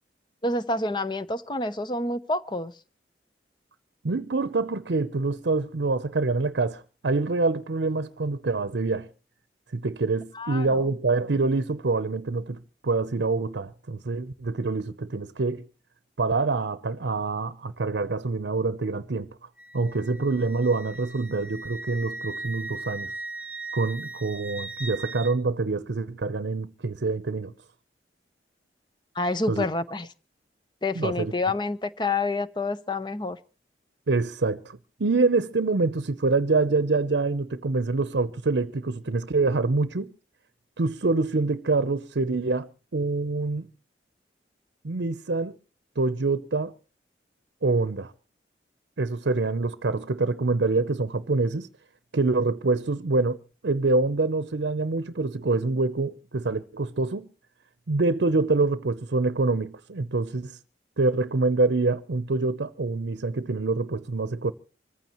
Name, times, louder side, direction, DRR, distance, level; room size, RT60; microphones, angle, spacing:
voice 1, 0.4-2.7 10.3-10.8 29.2-30.1 30.8-33.4, left 2 dB, 25° left, 0.8 m, -28 dB
voice 2, 4.0-9.1 9.7-15.7 16.2-19.3 19.7-23.1 23.7-27.5 29.5-29.7 30.9-31.3 34.1-40.1 40.8-43.7 44.8-45.6 46.0-46.7 47.6-48.1 49.0-51.7 52.1-57.3 57.9-60.6 61.0-64.5, right 3 dB, 80° right, 0.7 m, -26 dB
Wind instrument woodwind instrument, 19.6-25.3, right 2 dB, 10° right, 1.1 m, -38 dB
25.5 x 15.0 x 3.0 m
head